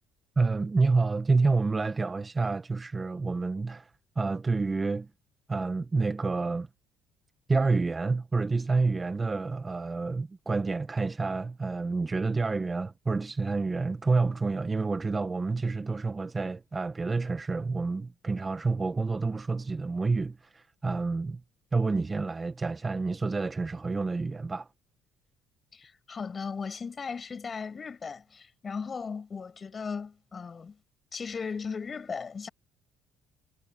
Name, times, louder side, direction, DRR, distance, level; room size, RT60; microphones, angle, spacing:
voice 1, 0.4-5.1 5.5-6.7 7.5-21.4 21.7-24.7, right 3 dB, 20° right, 1.4 m, -28 dB
voice 2, 25.7-30.8 31.1-32.5, left 5 dB, 30° left, 5.8 m, -37 dB
cardioid pair, 105°, 0 cm